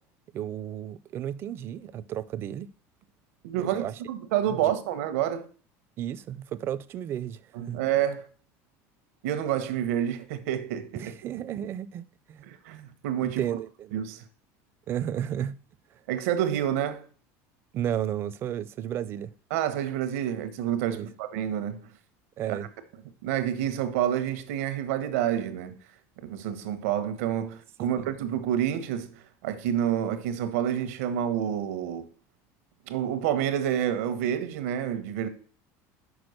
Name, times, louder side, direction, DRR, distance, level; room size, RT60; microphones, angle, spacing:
voice 1, 0.3-2.7 3.5-4.0 4.5-4.6 6.0-7.8 11.0-12.5 13.2-13.9 14.9-15.6 15.9-16.0 17.7-19.3 20.9-21.1 22.4-22.7 27.9-28.1, right 10 dB, 35° right, 0.4 m, -33 dB
voice 2, 3.4-5.5 7.5-8.3 9.2-11.1 12.5-13.4 13.9-14.2 16.1-17.1 19.5-21.9 22.5-22.6 23.2-25.8 26.2-32.1 32.9-35.3, right 10 dB, 90° right, 1.1 m, -28 dB
6.2 x 5.0 x 6.4 m
cardioid pair, 160°, 7 cm